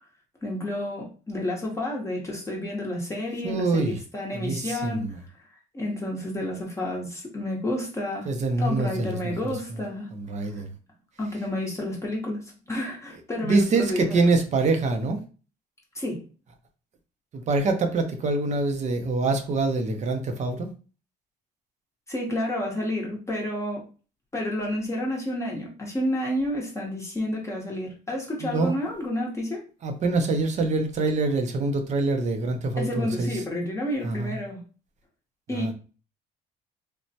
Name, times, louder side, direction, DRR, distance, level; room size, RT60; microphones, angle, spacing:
voice 1, 0.4-5.2 5.7-8.3 8.6-10.1 10.5-10.6 11.2-14.3 15.9-16.2 22.1-23.8 24.3-29.6 32.8-34.6 35.5-35.7, left 1 dB, 15° left, 0.7 m, -30 dB
voice 2, 3.4-4.0 4.3-5.2 8.3-9.5 10.1-10.7 13.4-15.2 17.3-20.7 28.4-28.7 29.8-33.4 34.0-34.4 35.5-35.7, right 3 dB, 45° right, 0.5 m, -25 dB
3.2 x 2.0 x 2.7 m
cardioid pair, 110°, 17 cm